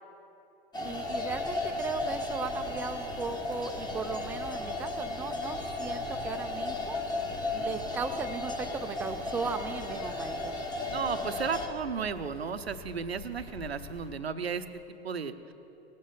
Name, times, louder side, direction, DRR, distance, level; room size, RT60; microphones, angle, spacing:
sound 1, 0.7-11.7, left 2 dB, 15° left, 1.3 m, -35 dB
sound 2, 0.8-14.1, left 3 dB, 90° left, 3.1 m, -48 dB
voice 1, 0.8-7.0 7.5-10.6, right 5 dB, 5° right, 7 dB, 0.3 m, -37 dB
voice 2, 10.9-15.5, right 6 dB, 85° right, 11 dB, 0.7 m, -34 dB
18.5 x 7.5 x 5.7 m, 2.9 s
figure-of-eight pair, 95°, 30 cm